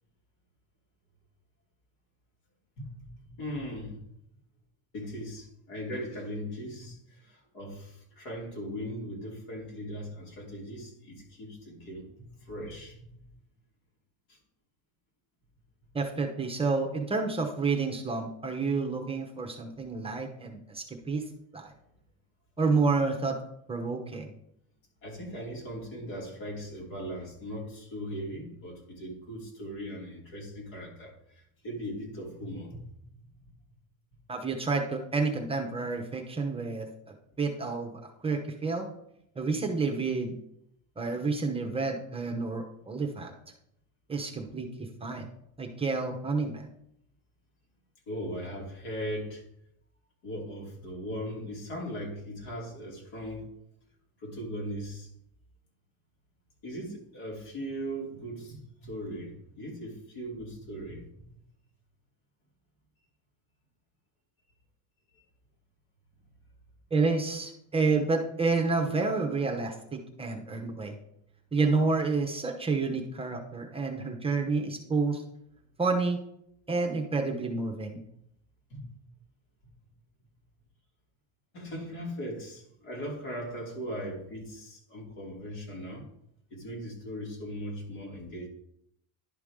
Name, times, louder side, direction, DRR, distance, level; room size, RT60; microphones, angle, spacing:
voice 1, 2.8-4.0 4.9-13.0 14.3-14.4 25.0-32.8 48.1-49.4 50.2-53.5 54.2-55.1 56.6-61.1 65.1-65.2 78.7-78.9 81.5-86.0 86.5-88.5, equal, 70° left, -2 dB, 3.2 m, -39 dB
voice 2, 15.9-21.2 21.5-21.7 22.6-23.4 23.7-24.3 34.3-36.9 37.4-38.9 39.4-40.4 41.0-43.3 44.1-45.3 45.6-46.7 66.9-70.9 71.5-75.2 75.8-76.2 76.7-78.0, right 4 dB, 15° right, 3 dB, 0.9 m, -29 dB
11.0 x 4.8 x 3.6 m, 0.74 s
cardioid pair, 130°, 36 cm